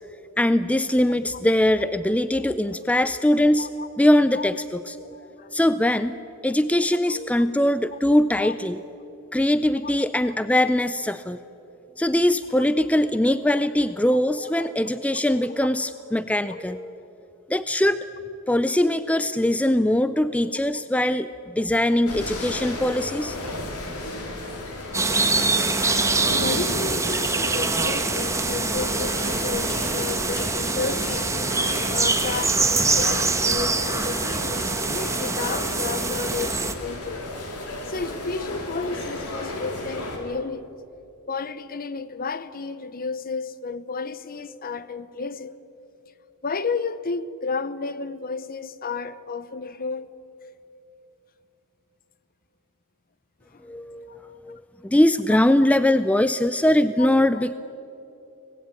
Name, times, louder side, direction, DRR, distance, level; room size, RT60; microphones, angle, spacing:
voice 1, 0.4-3.7 4.0-4.9 5.5-6.2 6.4-8.8 9.3-11.4 12.0-17.0 17.5-18.0 18.5-21.3 21.5-23.4 53.6-57.5, left 1 dB, 5° left, 0.4 m, -21 dB
voice 2, 5.1-5.5 8.4-8.5 9.8-9.9 14.4-14.7 26.4-31.3 31.9-37.3 37.9-40.7 41.3-45.6 46.4-50.1 53.5-53.6 54.1-54.4 57.0-57.1 57.3-57.4, left 4 dB, 40° left, 0.8 m, -32 dB
sound 1, 22.1-40.2, left 2 dB, 90° left, 4.0 m, -34 dB
sound 2, 24.9-36.7, right 3 dB, 15° right, 1.4 m, -24 dB
24.5 x 19.0 x 9.0 m
head